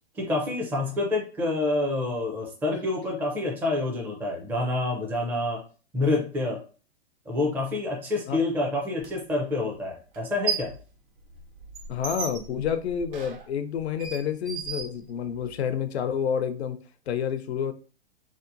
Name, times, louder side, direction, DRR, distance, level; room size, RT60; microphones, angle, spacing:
voice 1, 0.1-5.6 5.9-6.6 7.3-10.7, left 2 dB, 5° right, 0 dB, 0.4 m, -27 dB
sound 1, 9.0-9.1 10.1-10.8 11.2-15.5, right 6 dB, 55° right, 0.9 m, -35 dB
voice 2, 11.9-16.8 17.1-17.7, left 8 dB, 75° left, 10 dB, 0.5 m, -29 dB
2.8 x 2.1 x 2.5 m, 0.38 s
hypercardioid pair, 115°, 33 cm